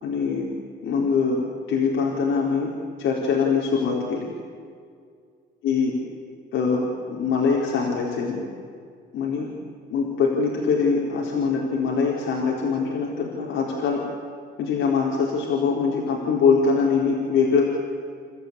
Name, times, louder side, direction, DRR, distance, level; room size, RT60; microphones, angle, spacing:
voice 1, 0.0-0.5 0.8-1.4 1.7-2.7 3.0-4.3 5.6-5.9 6.5-8.5 9.1-9.5 9.9-14.0 14.6-17.7, left 5 dB, 85° left, -3 dB, 4.2 m, -23 dB
29.5 x 14.0 x 10.0 m, 2.1 s
cardioid pair, 90°, 20 cm